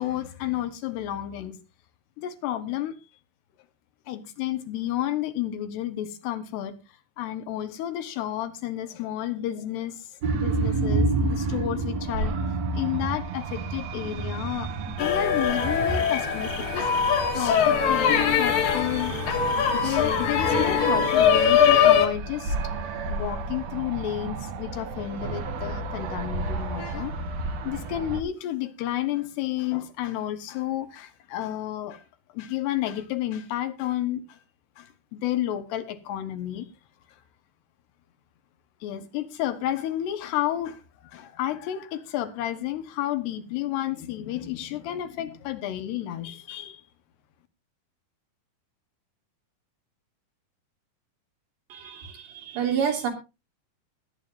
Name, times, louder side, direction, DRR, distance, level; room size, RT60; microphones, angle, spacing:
voice 1, 0.0-1.6 2.2-3.0 4.1-6.8 7.2-12.4 12.7-19.2 19.7-22.6 23.1-27.1 27.6-32.0 32.3-34.4 34.8-36.7 38.8-46.8, left 12 dB, 80° left, 3.2 m, -31 dB
sound 1, 10.2-28.2, right 3 dB, 65° right, 1.7 m, -31 dB
sound 2, 15.0-22.1, left 7 dB, 60° left, 3.2 m, -22 dB
voice 2, 51.7-53.1, right 7 dB, 85° right, 5.1 m, -28 dB
20.5 x 9.2 x 2.6 m
omnidirectional pair, 4.8 m